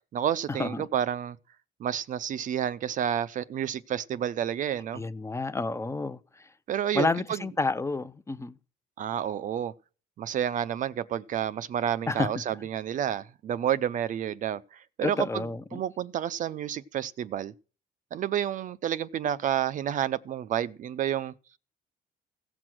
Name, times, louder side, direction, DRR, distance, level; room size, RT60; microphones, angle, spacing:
voice 1, 0.1-1.4 1.8-5.0 6.7-7.4 9.0-9.7 10.2-17.5 18.1-21.3, right 10 dB, 50° right, 0.5 m, -30 dB
voice 2, 4.9-6.2 6.9-8.5 12.1-12.3 15.0-15.8, left 3 dB, 15° left, 0.7 m, -29 dB
16.0 x 6.1 x 6.2 m
cardioid pair, 110°, 17 cm